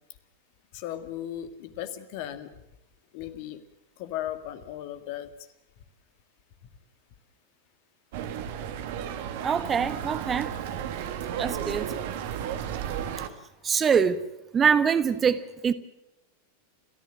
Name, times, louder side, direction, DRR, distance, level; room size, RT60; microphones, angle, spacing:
voice 1, 0.7-2.5 3.1-3.6 4.0-5.3, left 11 dB, 45° left, 10 dB, 1.9 m, -36 dB
sound 1, 8.1-13.3, right 9 dB, 50° right, 1.9 m, -33 dB
voice 2, 9.4-10.5 11.4-11.9 13.6-14.3 14.5-15.7, right 6 dB, 20° right, 13 dB, 1.1 m, -24 dB
29.5 x 14.5 x 7.4 m, 0.94 s
figure-of-eight pair, 90°, 0 cm